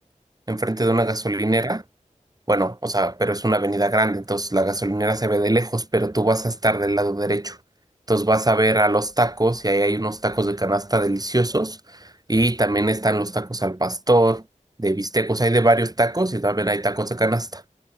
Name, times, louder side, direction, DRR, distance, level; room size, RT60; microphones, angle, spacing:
voice 1, 0.5-1.8 2.5-7.6 8.1-14.4 14.8-17.6, right 1 dB, 30° right, 5.6 m, -21 dB
wide cardioid pair, 55°, 13 cm